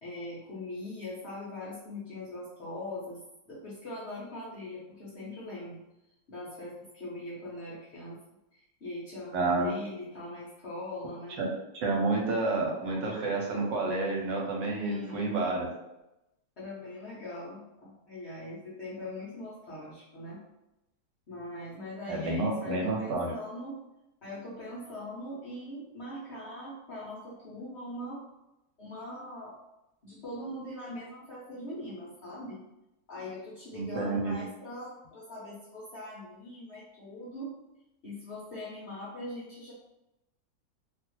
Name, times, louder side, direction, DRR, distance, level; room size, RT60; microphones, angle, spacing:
voice 1, 0.0-3.2 3.5-5.8 6.3-8.2 8.5-11.4 14.8-15.3 16.6-20.4 21.3-23.8 24.2-28.2 28.8-29.5 30.0-32.6 33.1-37.5 38.0-39.7, left 1 dB, 60° left, -7 dB, 0.7 m, -41 dB
voice 2, 9.3-9.7 11.4-15.7 22.1-23.3 33.7-34.4, right 3 dB, 80° right, -1 dB, 1.4 m, -30 dB
2.8 x 2.4 x 3.0 m, 0.91 s
omnidirectional pair, 1.9 m